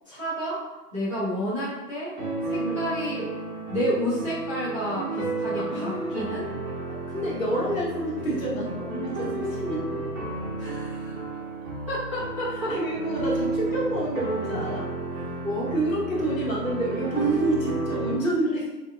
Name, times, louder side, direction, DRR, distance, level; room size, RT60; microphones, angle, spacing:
voice 1, 0.1-0.6 0.9-2.1 2.5-3.3 3.7-6.5 10.6-11.1 11.9-12.7 15.4-15.7, equal, 20° right, -13 dB, 0.6 m, -30 dB
sound 1, 2.2-18.1, right 2 dB, 50° right, 1.0 m, -32 dB
voice 2, 5.5-6.4 6.9-9.8 12.5-14.9 15.7-18.7, right 1 dB, 50° left, -5 dB, 1.1 m, -28 dB
3.4 x 2.7 x 2.3 m, 1.1 s
hypercardioid pair, 165°, 50 cm